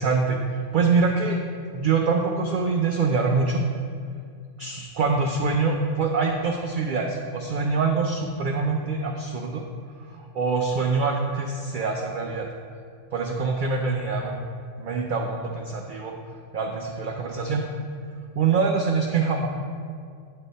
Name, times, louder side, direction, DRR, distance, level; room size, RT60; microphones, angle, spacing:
voice 1, 0.0-1.4 1.7-3.6 4.6-9.6 10.0-12.5 13.1-14.4 14.8-16.1 16.5-17.6 18.4-19.5, right 4 dB, 70° right, 1 dB, 0.4 m, -24 dB
8.9 x 3.7 x 4.0 m, 2.3 s
omnidirectional pair, 1.4 m